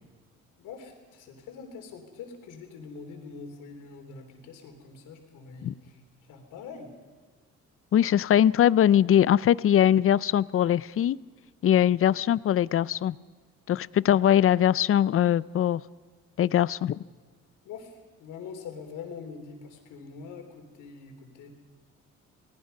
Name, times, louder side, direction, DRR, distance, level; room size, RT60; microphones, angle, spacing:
voice 1, 0.6-6.0 6.3-6.9 14.1-14.2 17.6-21.5, left 5 dB, 90° left, 3 dB, 3.6 m, -44 dB
voice 2, 7.9-11.2 11.6-13.2 13.7-15.8 16.4-17.0, left 10 dB, 45° left, 20 dB, 0.5 m, -21 dB
27.5 x 19.0 x 5.5 m, 1.5 s
cardioid pair, 90°, 30 cm